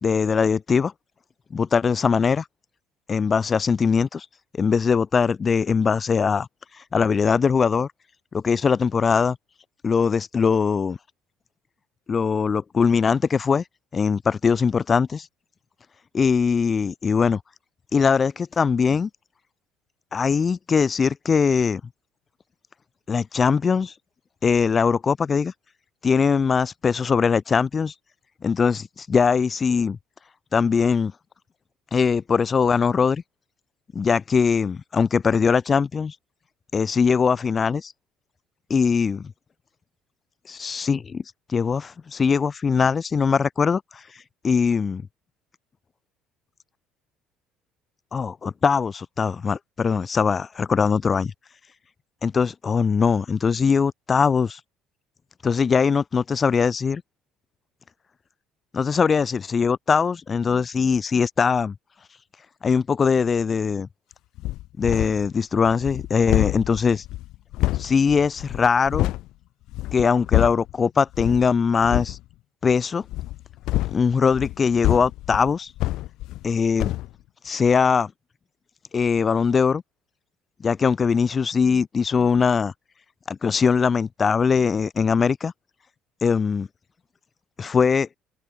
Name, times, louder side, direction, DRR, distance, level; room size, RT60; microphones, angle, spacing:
voice 1, 0.0-0.9 1.5-2.4 3.1-4.3 4.5-6.5 6.9-7.9 8.3-9.4 9.8-11.0 12.1-13.6 13.9-15.3 16.1-17.4 17.9-19.1 20.1-21.8 23.1-23.9 24.4-25.5 26.0-27.9 28.4-30.0 30.5-31.1 31.9-33.2 33.9-36.2 36.7-37.9 38.7-39.3 40.5-41.2 41.5-44.0 44.4-45.0 48.1-51.3 52.2-54.6 55.4-57.0 58.7-61.7 62.6-63.9 64.8-67.0 67.8-69.1 69.9-72.2 72.6-73.0 73.9-75.7 76.4-76.9 77.4-78.1 78.9-79.8 80.6-82.7 83.3-85.5 86.2-86.7 87.6-88.1, left 5 dB, 35° left, 1.9 m, -21 dB
sound 1, 64.4-65.3 65.6-69.3 69.7-70.7 71.1-71.5 71.8-72.2 73.1-76.5 76.8-77.1, left 17 dB, 70° left, 1.8 m, -27 dB
open air
supercardioid pair, 75°, 0 cm